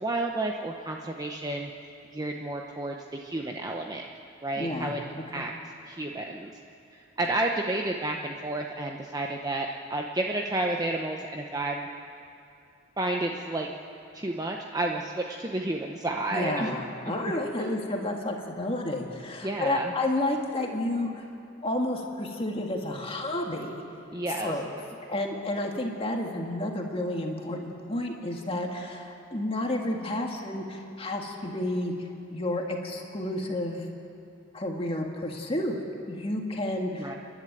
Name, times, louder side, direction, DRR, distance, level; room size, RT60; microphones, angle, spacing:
voice 1, 0.0-4.1 4.4-5.5 5.9-6.5 6.9-11.9 13.0-13.7 14.1-16.7 17.0-17.3 17.6-17.7 19.4-19.9 24.1-24.5 36.9-37.2, right 2 dB, 20° right, 1 dB, 0.9 m, -31 dB
voice 2, 4.6-4.9 5.3-5.4 16.3-21.2 21.6-23.8 24.3-24.7 25.1-31.9 32.3-33.8 34.5-37.1, left 1 dB, 30° left, 1 dB, 1.8 m, -31 dB
29.5 x 11.5 x 9.0 m, 2.6 s
head